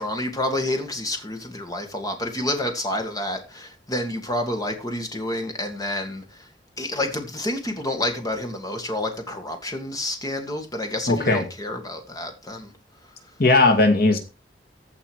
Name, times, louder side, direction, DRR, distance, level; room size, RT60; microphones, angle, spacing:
voice 1, 0.0-6.5 6.8-12.7, left 1 dB, 20° left, 2.0 m, -29 dB
voice 2, 11.1-11.4 13.4-14.2, left 2 dB, 55° left, 1.9 m, -17 dB
15.0 x 5.5 x 4.8 m
head